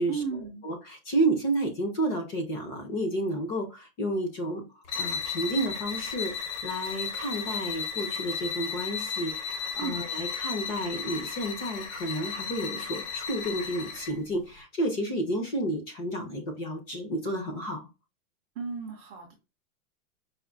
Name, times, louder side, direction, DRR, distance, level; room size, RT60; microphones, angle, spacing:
voice 1, 0.1-0.7 9.7-10.0 18.5-19.3, right 5 dB, 20° right, 0 dB, 0.5 m, -35 dB
voice 2, 0.6-4.6 5.0-17.9, right 1 dB, 25° left, 5 dB, 0.7 m, -31 dB
sound 1, 4.9-14.2, left 6 dB, 50° left, 1.1 m, -34 dB
4.9 x 2.6 x 2.6 m, 0.27 s
supercardioid pair, 165°, 42 cm